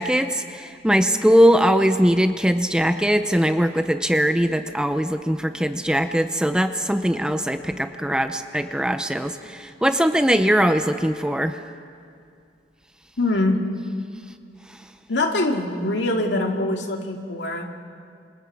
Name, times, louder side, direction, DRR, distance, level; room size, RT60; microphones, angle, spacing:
voice 1, 0.0-11.5, equal, 5° right, 8 dB, 0.7 m, -21 dB
voice 2, 13.2-13.6 15.1-17.8, left 2 dB, 90° left, 2 dB, 2.4 m, -23 dB
27.5 x 26.5 x 4.9 m, 2.4 s
head